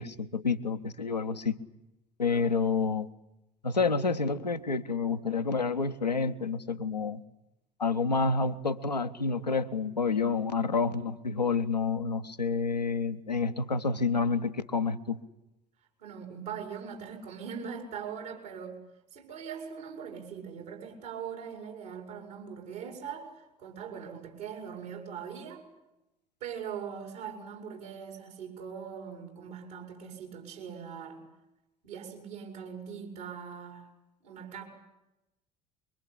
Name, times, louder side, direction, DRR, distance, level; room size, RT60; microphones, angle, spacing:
voice 1, 0.0-1.6 2.2-3.1 3.6-7.2 7.8-15.2, left 4 dB, 90° left, 7 dB, 0.8 m, -29 dB
voice 2, 2.3-2.6 16.0-18.8 19.1-25.6 26.4-31.2 31.8-33.9 34.2-34.6, right 7 dB, 70° right, 2 dB, 5.5 m, -41 dB
23.5 x 23.0 x 8.5 m, 0.94 s
figure-of-eight pair, 60°, 21 cm